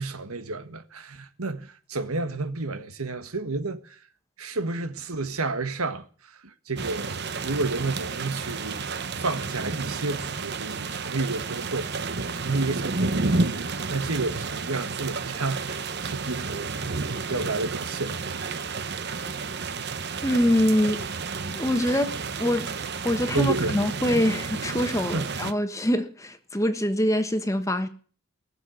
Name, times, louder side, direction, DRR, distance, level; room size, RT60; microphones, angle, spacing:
voice 1, 0.0-4.0 4.4-8.8 9.1-16.7 17.3-18.6 23.3-23.9 24.9-25.3, right 3 dB, 85° right, 1.6 m, -31 dB
sound 1, 6.7-25.5, right 4 dB, 50° right, 1.0 m, -31 dB
voice 2, 20.2-21.0 21.5-22.7 23.0-27.9, left 1 dB, 15° left, 1.3 m, -24 dB
20.0 x 7.5 x 9.6 m
head